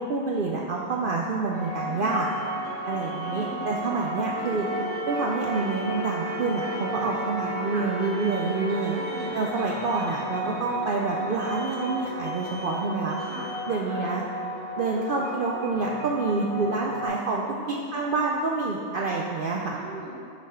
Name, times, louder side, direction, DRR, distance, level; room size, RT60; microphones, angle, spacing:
voice 1, 0.0-2.3 2.9-4.7 5.1-9.0 9.3-13.2 13.7-14.2 14.8-17.4 17.7-19.8, right 3 dB, 85° right, -2 dB, 0.4 m, -27 dB
sound 1, 1.5-17.1, equal, 65° right, 1.4 m, -34 dB
voice 2, 1.8-2.2 3.2-3.7 4.3-4.9 7.7-7.9 9.0-9.3 13.2-14.0 17.6-17.9 19.7-20.2, right 2 dB, 40° right, -6 dB, 0.8 m, -41 dB
Alarm, 2.0-2.5 2.9-3.3 4.6-5.1 5.4-5.9 6.3-6.8 8.0-8.5 8.8-9.3 9.7-10.1 11.4-11.9 12.2-12.7 13.1-13.6, left 3 dB, 30° left, 1.2 m, -48 dB
Wind instrument woodwind instrument, 4.3-9.5, right 3 dB, 65° left, 1.3 m, -36 dB
6.0 x 4.2 x 5.4 m, 2.4 s
omnidirectional pair, 1.5 m